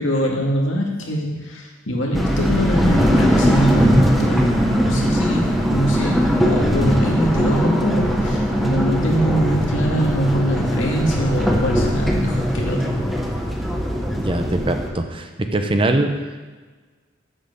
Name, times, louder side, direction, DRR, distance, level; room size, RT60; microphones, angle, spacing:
voice 1, 0.0-13.0, equal, 85° left, -1 dB, 2.1 m, -23 dB
sound 1, 2.1-14.9, equal, ahead, 1.2 m, -20 dB
voice 2, 14.2-16.1, right 2 dB, 30° right, 6 dB, 0.8 m, -22 dB
7.9 x 7.5 x 6.8 m, 1.3 s
head